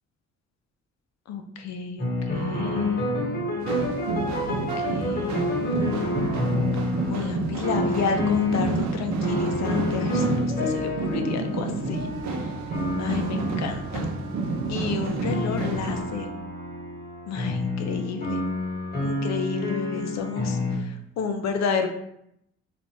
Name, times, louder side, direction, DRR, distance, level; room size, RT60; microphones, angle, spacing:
voice 1, 1.3-3.0 4.5-6.1 7.1-12.6 13.0-14.1 14.7-16.3 17.3-18.4 19.0-21.9, left 5 dB, 60° left, 6 dB, 0.5 m, -31 dB
sound 1, 2.0-7.3 7.6-8.8 9.2-14.7 15.2-20.7, left 2 dB, 30° left, 1.1 m, -29 dB
sound 2, 3.6-16.0, right 3 dB, 65° right, 0.6 m, -30 dB
Wind instrument woodwind instrument, 11.7-17.1, right 7 dB, 10° left, 0.6 m, -44 dB
3.2 x 2.5 x 2.6 m, 0.76 s
cardioid pair, 90°, 30 cm